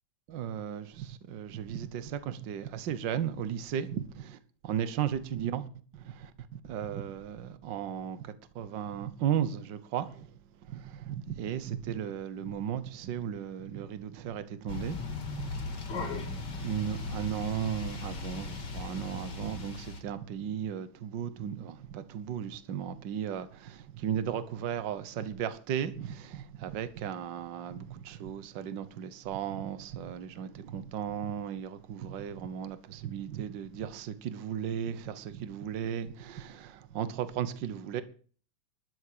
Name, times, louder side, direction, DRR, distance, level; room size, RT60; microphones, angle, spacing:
voice 1, 0.3-4.4 4.6-5.7 5.9-10.3 10.6-38.0, right 9 dB, 90° right, 1.0 m, -36 dB
sound 1, 14.7-20.0, left 3 dB, 40° left, 2.4 m, -38 dB
12.5 x 8.6 x 6.8 m
omnidirectional pair, 3.5 m